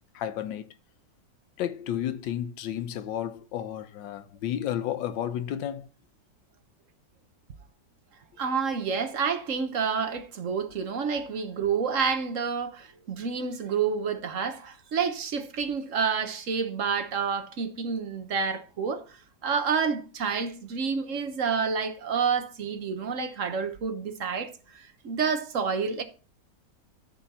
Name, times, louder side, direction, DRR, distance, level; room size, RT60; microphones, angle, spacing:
voice 1, 0.1-0.7 1.6-5.9, left 10 dB, 90° left, 1.5 m, -32 dB
voice 2, 8.4-19.2 19.4-26.0, right 6 dB, 50° right, 1.2 m, -29 dB
14.0 x 4.7 x 4.2 m
omnidirectional pair, 1.9 m